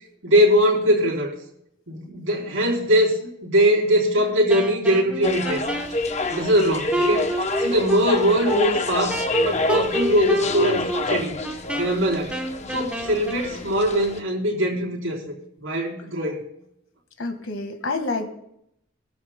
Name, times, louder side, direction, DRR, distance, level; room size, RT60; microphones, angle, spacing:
voice 1, 0.2-1.3 1.9-3.2 3.4-5.6 6.3-7.2 7.6-11.4 11.7-12.4 12.7-15.3 15.6-16.5, equal, 80° right, -4 dB, 3.7 m, -21 dB
Wind instrument woodwind instrument, 4.5-13.5, right 1 dB, 5° right, 1.0 m, -29 dB
sound 1, 5.2-14.2, left 2 dB, 35° left, 0.7 m, -27 dB
voice 2, 17.2-18.3, left 3 dB, 80° left, 7 dB, 1.7 m, -28 dB
20.0 x 13.0 x 2.2 m, 0.76 s
head